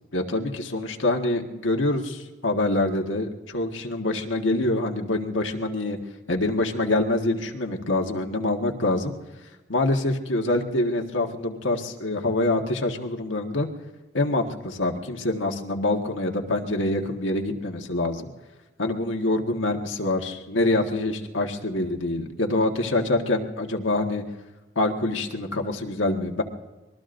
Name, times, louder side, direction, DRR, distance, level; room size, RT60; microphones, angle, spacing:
voice 1, 0.1-6.0 6.3-9.1 9.7-13.7 14.1-18.3 18.8-24.2 24.7-26.4, left 2 dB, 85° left, 3 dB, 1.5 m, -25 dB
25.5 x 21.0 x 2.6 m, 1.1 s
head